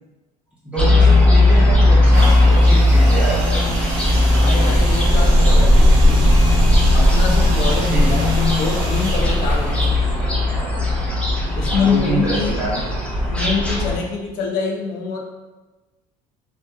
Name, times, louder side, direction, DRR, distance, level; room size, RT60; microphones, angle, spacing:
voice 1, 0.6-3.9 5.5-5.6 7.9-8.2 11.7-12.9, right 2 dB, 10° right, -9 dB, 1.0 m, -26 dB
sound 1, 0.8-14.0, left 1 dB, 5° left, 0.5 m, -16 dB
sound 2, 2.1-11.8 12.5-12.6, right 2 dB, 70° right, 0.7 m, -32 dB
voice 2, 4.3-6.4 6.9-10.1 11.6-12.5 13.3-15.2, left 4 dB, 70° left, 0 dB, 0.4 m, -25 dB
2.7 x 2.1 x 2.2 m, 1.2 s
cardioid pair, 120°, 15 cm